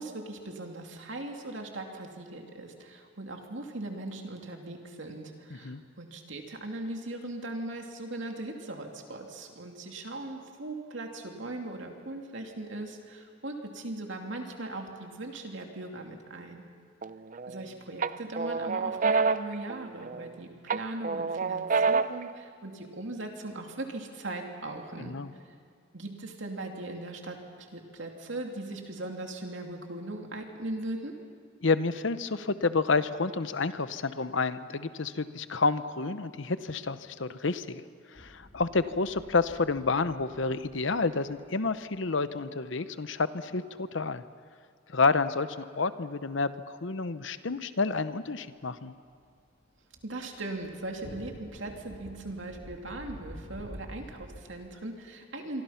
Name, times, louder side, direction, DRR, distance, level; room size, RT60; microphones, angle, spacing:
voice 1, 0.0-16.6 17.5-25.1 25.4-25.5 25.9-31.1 50.0-55.6, right 2 dB, 65° right, 2 dB, 2.8 m, -39 dB
sound 1, 17.0-17.6 18.0-20.3 20.7-22.3, right 4 dB, 40° right, 0.5 m, -28 dB
voice 2, 25.0-25.3 31.6-37.8 38.1-44.2 44.9-48.9, left 4 dB, 65° left, 13 dB, 0.9 m, -29 dB
sound 2, 38.2-42.1 49.0-54.4, equal, 40° left, 2.5 m, -48 dB
26.5 x 24.0 x 5.8 m, 2.1 s
head